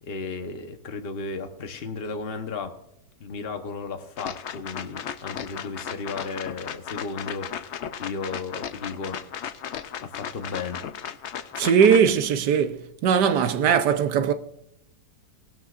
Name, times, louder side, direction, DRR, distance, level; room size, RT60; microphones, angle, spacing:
voice 1, 0.0-2.8 3.2-9.2 10.0-10.8, left 4 dB, 40° left, 1.2 m, -34 dB
sound 1, 4.2-12.0, left 8 dB, 60° left, 0.7 m, -35 dB
voice 2, 11.6-14.3, right 7 dB, 80° right, 1.4 m, -20 dB
18.5 x 12.5 x 2.5 m
omnidirectional pair, 1.8 m